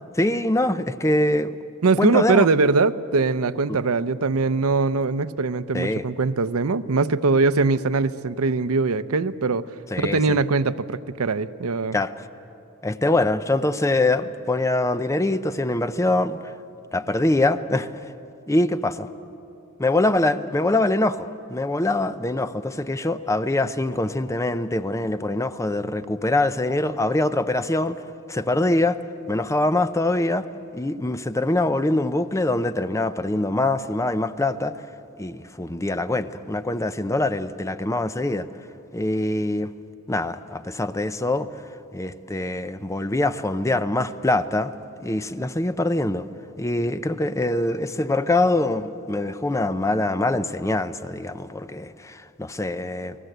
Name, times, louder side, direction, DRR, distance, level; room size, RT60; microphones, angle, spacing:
voice 1, 0.2-1.6 2.0-2.5 3.7-3.8 5.7-6.0 9.9-10.4 11.9-12.1 12.8-16.4 16.9-17.9 18.5-19.1 19.8-28.0 28.3-29.0 29.3-30.5 30.7-34.8 35.2-38.5 38.9-39.7 40.1-41.5 41.9-44.7 45.0-46.3 46.6-53.1, left 2 dB, 15° left, 0.6 m, -23 dB
voice 2, 1.8-9.7 10.0-12.0, right 3 dB, 90° right, 0.7 m, -22 dB
30.0 x 19.0 x 8.0 m
head